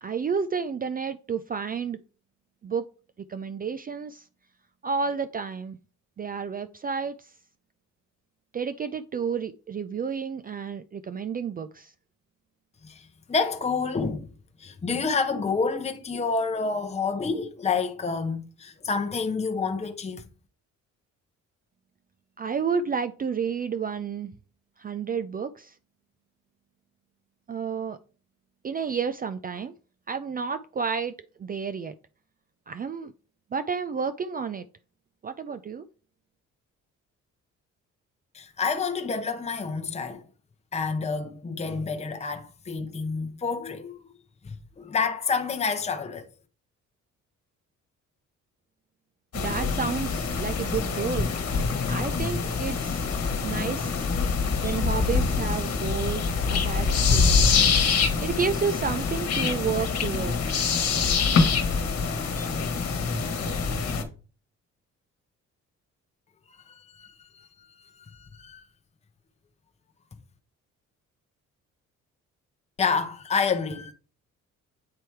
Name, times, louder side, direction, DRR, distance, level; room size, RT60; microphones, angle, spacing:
voice 1, 0.0-2.0 2.6-2.8 3.3-4.2 4.8-5.8 6.2-7.3 8.5-11.9 22.4-24.3 24.8-25.7 27.5-28.0 28.6-29.7 30.1-31.1 31.4-31.9 32.7-33.1 33.5-34.7 35.2-35.9 49.3-51.3 51.9-53.0 53.4-54.0 54.6-57.5 58.2-60.5, right 6 dB, 30° right, 0.4 m, -31 dB
voice 2, 12.8-14.3 14.6-20.2 38.3-40.2 40.7-44.0 44.4-46.3 66.5-67.5 67.8-68.7 72.8-73.9, left 5 dB, 20° left, 0.8 m, -29 dB
sound 1, 49.3-64.0, left 5 dB, 55° left, 1.4 m, -25 dB
8.5 x 3.1 x 4.5 m
cardioid pair, 90°, 30 cm